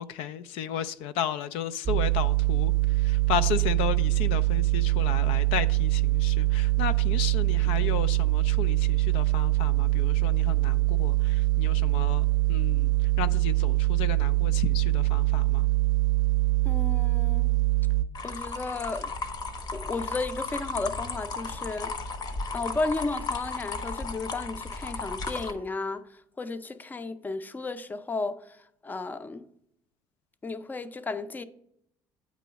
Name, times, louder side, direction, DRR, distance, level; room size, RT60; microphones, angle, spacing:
voice 1, 0.0-15.7, left 9 dB, 80° left, 0.4 m, -34 dB
sound 1, 1.9-18.1, right 20 dB, 45° right, 0.6 m, -24 dB
voice 2, 16.6-17.5 18.2-19.1 19.7-21.9 22.5-29.5 30.4-31.4, left 3 dB, 20° left, 0.5 m, -34 dB
sound 2, 18.1-25.5, left 3 dB, 45° left, 0.9 m, -35 dB
8.4 x 3.0 x 5.6 m
supercardioid pair, 85°, 9 cm